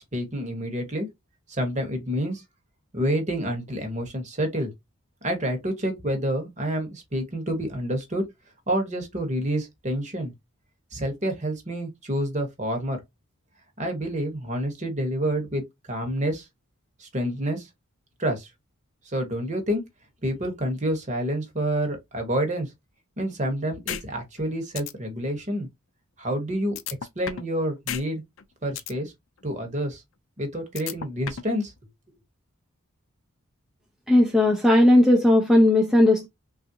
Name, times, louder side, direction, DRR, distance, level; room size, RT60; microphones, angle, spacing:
voice 1, 0.1-1.1 1.5-2.4 2.9-4.7 5.2-8.2 8.7-10.3 10.9-13.0 13.8-15.6 15.9-16.5 17.0-17.7 18.2-18.5 19.1-19.8 20.2-22.7 23.2-25.7 26.2-26.8 27.2-28.2 28.6-29.1 29.4-30.0 30.4-31.7, right 1 dB, 30° right, 1.0 m, -28 dB
sound 1, 23.9-24.0 24.4-24.5 24.8-24.9 26.8-27.5 27.9-28.0 28.4-28.9 30.8-31.5, left 9 dB, 60° left, 0.4 m, -32 dB
voice 2, 34.1-36.3, left 1 dB, ahead, 0.4 m, -17 dB
3.6 x 2.4 x 2.6 m
head